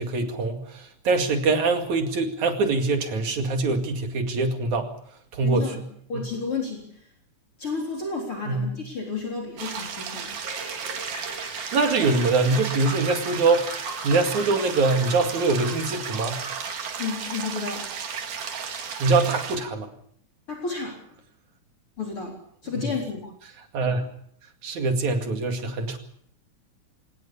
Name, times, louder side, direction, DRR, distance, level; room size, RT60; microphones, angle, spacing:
voice 1, 0.0-4.9 5.3-5.9 6.1-6.2 8.5-8.7 11.7-16.4 19.0-19.9 22.7-22.9 23.7-24.1 24.6-26.0, right 3 dB, 70° right, 5 dB, 3.7 m, -24 dB
voice 2, 5.4-5.8 6.1-6.8 7.6-10.4 17.0-17.8 20.5-21.0 22.0-22.4 22.6-23.3, left 4 dB, 45° left, 0 dB, 4.7 m, -31 dB
sound 1, 9.6-19.6, right 6 dB, 85° right, 3.8 m, -34 dB
sound 2, 10.4-16.8, right 2 dB, 55° right, 6.3 m, -39 dB
24.0 x 19.0 x 7.1 m, 0.65 s
omnidirectional pair, 3.5 m